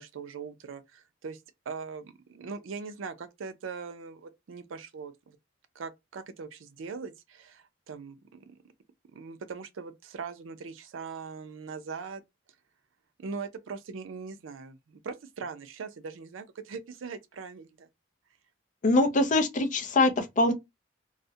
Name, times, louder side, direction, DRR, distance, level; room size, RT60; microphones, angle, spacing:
voice 1, 0.0-1.4 1.7-5.4 5.7-8.6 9.1-12.2 13.2-17.9, right 5 dB, 75° right, 0.4 m, -41 dB
voice 2, 18.8-20.5, left 2 dB, 40° left, 0.4 m, -23 dB
2.3 x 2.1 x 2.6 m
head